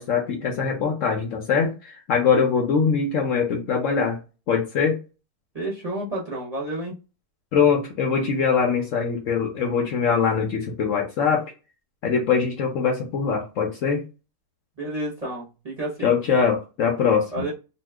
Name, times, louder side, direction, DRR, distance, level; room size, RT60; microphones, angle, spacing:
voice 1, 0.0-4.2 4.5-5.0 7.5-11.5 12.0-14.0 16.0-17.4, left 6 dB, 65° left, 1 dB, 0.9 m, -22 dB
voice 2, 5.5-6.9 14.8-16.2 17.3-17.5, right 1 dB, 30° right, -6 dB, 0.8 m, -30 dB
2.7 x 2.3 x 3.3 m, 0.30 s
omnidirectional pair, 1.7 m